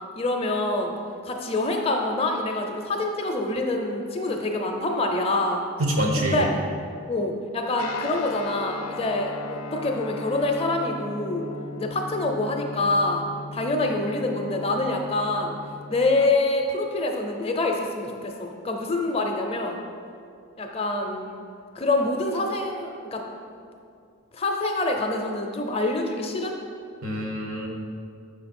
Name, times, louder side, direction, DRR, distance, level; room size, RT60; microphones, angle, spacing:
voice 1, 0.2-0.9 1.2-5.6 6.2-6.6 7.1-11.5 11.8-13.2 13.5-15.5 15.9-19.8 20.6-21.4 21.7-23.2 24.3-26.6, left 2 dB, 25° left, 2 dB, 0.5 m, -26 dB
voice 2, 5.8-6.4 27.0-27.7, equal, 80° right, 1 dB, 1.0 m, -25 dB
Guitar, 7.8-16.3, left 3 dB, 90° left, 0.4 m, -37 dB
6.4 x 5.1 x 4.2 m, 2.4 s
head